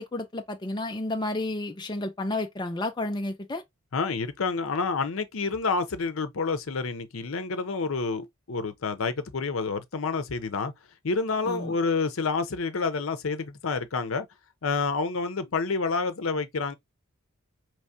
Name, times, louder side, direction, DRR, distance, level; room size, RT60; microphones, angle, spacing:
voice 1, 0.0-3.6 11.5-11.7, left 2 dB, 20° left, 0.4 m, -31 dB
voice 2, 3.9-10.7 11.0-14.3 14.6-16.7, left 4 dB, 70° left, 0.7 m, -28 dB
4.7 x 3.1 x 2.7 m
head